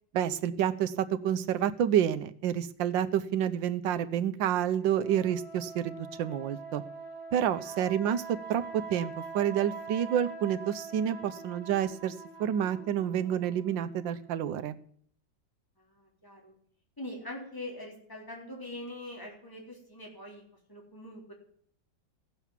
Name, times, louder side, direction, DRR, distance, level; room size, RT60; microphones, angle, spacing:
voice 1, 0.1-6.8 7.3-12.1 12.4-14.8, right 10 dB, 85° right, 11 dB, 1.5 m, -29 dB
sound 1, 4.8-14.5, right 4 dB, 35° left, 4.9 m, -44 dB
voice 2, 7.6-8.0 11.2-11.3 15.8-16.5 17.0-20.4 20.7-21.3, left 1 dB, 10° left, -2 dB, 3.7 m, -43 dB
15.5 x 7.1 x 7.4 m, 0.63 s
omnidirectional pair, 2.0 m